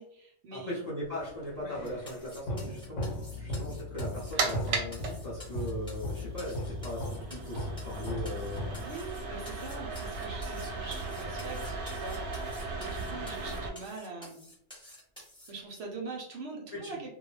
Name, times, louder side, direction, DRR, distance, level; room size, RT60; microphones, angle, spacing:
voice 1, 0.0-0.8 8.8-14.5 15.5-17.1, right 3 dB, 65° right, 0 dB, 0.7 m, -43 dB
voice 2, 0.5-8.8 16.7-17.0, equal, 45° left, -6 dB, 0.6 m, -39 dB
sound 1, 1.2-9.3, left 1 dB, 75° left, 0.9 m, -38 dB
sound 2, 1.8-15.5, left 1 dB, 5° left, 0.7 m, -51 dB
sound 3, 4.0-13.7, right 4 dB, 85° right, 1.0 m, -37 dB
2.2 x 2.1 x 3.1 m, 0.69 s
omnidirectional pair, 1.3 m